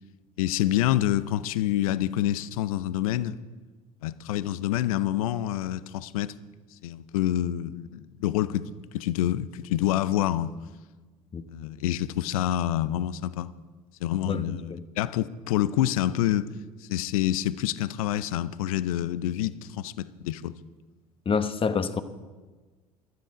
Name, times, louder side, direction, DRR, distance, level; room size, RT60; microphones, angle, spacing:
voice 1, 0.4-3.4 4.0-6.3 6.8-8.7 8.9-10.5 11.5-13.5 14.0-14.7 15.0-16.5 16.8-20.5, left 13 dB, 75° left, 0.6 m, -27 dB
voice 2, 11.3-11.6 14.2-14.8 21.2-22.0, left 5 dB, 30° left, 1.1 m, -28 dB
15.5 x 12.5 x 5.0 m
hypercardioid pair, 65°, 18 cm